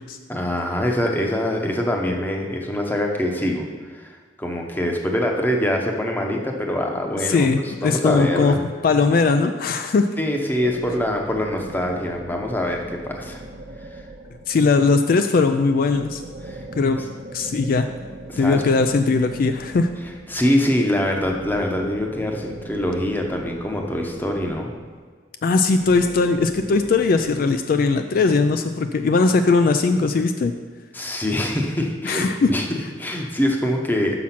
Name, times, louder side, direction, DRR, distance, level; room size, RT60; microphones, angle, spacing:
voice 1, 0.3-7.5 7.8-8.6 10.2-13.4 13.8-14.1 16.4-16.6 16.9-17.1 18.3-18.6 20.3-24.7 30.9-34.2, left 1 dB, 10° left, 1 dB, 0.8 m, -24 dB
voice 2, 7.3-8.5 8.8-10.1 14.5-16.2 16.8-17.0 17.3-17.9 18.4-19.9 25.4-30.5 32.0-32.5, left 4 dB, 55° left, 7 dB, 0.3 m, -19 dB
sound 1, 10.6-14.8 15.9-20.5 21.1-25.2 25.8-27.4, right 1 dB, 50° right, 0.8 m, -39 dB
6.1 x 6.0 x 5.7 m, 1.5 s
head